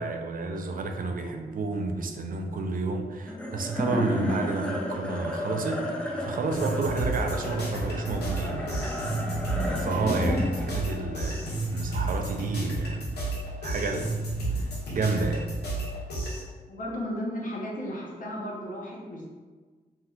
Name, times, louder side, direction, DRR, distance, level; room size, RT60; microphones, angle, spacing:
voice 1, 0.0-8.8 9.8-13.3 13.6-15.5, right 3 dB, 60° right, 4 dB, 0.4 m, -31 dB
sound 1, 3.3-13.8, equal, 5° left, 0.5 m, -33 dB
sound 2, 6.5-16.4, right 2 dB, 90° left, 0.8 m, -31 dB
voice 2, 16.7-19.3, equal, 55° left, -3 dB, 0.8 m, -34 dB
3.3 x 2.7 x 2.3 m, 1.4 s
cardioid pair, 85°, 16 cm